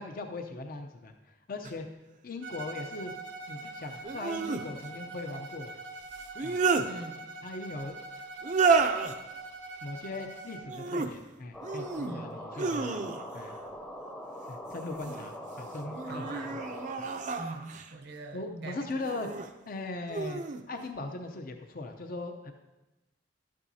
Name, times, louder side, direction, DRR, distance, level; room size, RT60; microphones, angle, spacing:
voice 1, 0.0-1.9 2.2-3.1 3.5-5.8 6.4-6.6 7.4-8.0 9.8-13.1 13.3-13.5 14.5-16.6 17.0-17.1 18.3-19.3 19.7-22.5, left 2 dB, 55° left, 5 dB, 0.7 m, -39 dB
sound 1, 1.6-1.7 4.0-4.6 6.2-6.9 8.4-9.2 10.6-11.1 11.6-12.1 12.5-13.4 14.7-15.3 15.9-17.9 19.0-19.5 20.1-20.6, right 4 dB, 45° right, 0.5 m, -30 dB
Bowed string instrument, 2.4-10.7, right 3 dB, 85° right, 1.2 m, -43 dB
voice 2, 6.9-7.3 12.0-12.4 16.0-16.6 17.4-19.0, right 2 dB, 65° right, 5 dB, 0.9 m, -43 dB
sound 2, 11.5-17.0, equal, 5° left, 0.7 m, -42 dB
12.0 x 8.8 x 2.8 m, 1.0 s
head